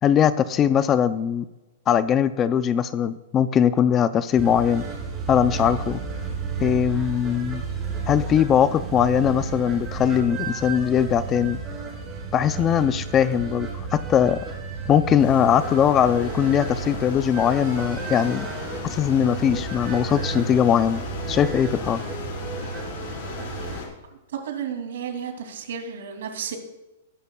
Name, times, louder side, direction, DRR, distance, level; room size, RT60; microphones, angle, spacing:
voice 1, 0.0-1.4 1.9-4.8 5.3-6.0 6.6-7.6 8.1-11.6 12.3-14.4 14.9-18.5 18.9-21.0 21.3-22.0, left 9 dB, 20° left, 14 dB, 0.4 m, -20 dB
sound 1, 4.4-23.8, right 5 dB, 15° right, 2.9 m, -32 dB
sound 2, 15.2-23.9, left 4 dB, 60° left, 4.2 m, -36 dB
voice 2, 24.3-26.6, right 7 dB, 80° right, 4 dB, 2.5 m, -32 dB
19.5 x 11.0 x 2.3 m, 1.0 s
supercardioid pair, 165°, 0 cm